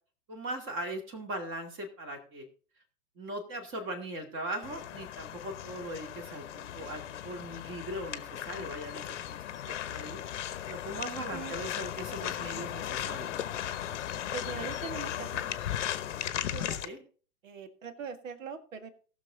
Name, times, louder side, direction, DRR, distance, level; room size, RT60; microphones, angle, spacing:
voice 1, 0.3-2.5 3.2-10.2 10.7-13.4 16.6-17.0, right 1 dB, 25° right, 4 dB, 2.3 m, -40 dB
sound 1, 4.6-16.9, left 11 dB, 50° left, 1.0 m, -37 dB
voice 2, 14.3-15.5 16.5-17.0 17.4-18.9, right 5 dB, 55° right, 11 dB, 1.8 m, -41 dB
18.5 x 6.5 x 3.8 m, 0.40 s
figure-of-eight pair, 105°, 46 cm